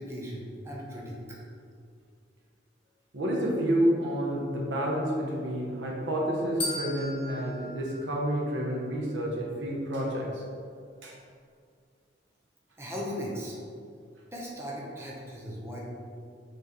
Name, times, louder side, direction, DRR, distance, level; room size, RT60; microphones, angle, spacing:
voice 1, 0.0-1.4 12.8-13.6 14.3-15.8, equal, 15° right, -4 dB, 0.9 m, -37 dB
voice 2, 3.1-10.3 11.0-11.1, equal, 80° right, -3 dB, 1.2 m, -29 dB
sound 1, 6.6-8.8, left 1 dB, 30° left, 1.2 m, -38 dB
6.8 x 3.5 x 4.0 m, 2.3 s
head